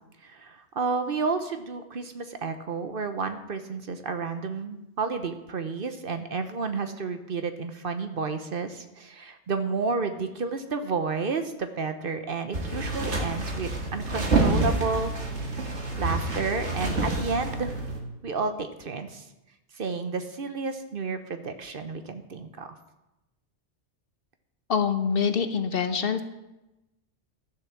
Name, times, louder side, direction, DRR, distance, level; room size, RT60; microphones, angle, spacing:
voice 1, 0.2-15.1 16.0-17.8 18.2-19.2 19.7-22.7, right 4 dB, 55° right, 8 dB, 1.0 m, -31 dB
sound 1, 12.5-18.0, right 2 dB, 70° right, 2.2 m, -28 dB
voice 2, 24.7-26.2, left 6 dB, 55° left, 9 dB, 1.0 m, -25 dB
12.5 x 7.0 x 7.1 m, 0.97 s
omnidirectional pair, 1.2 m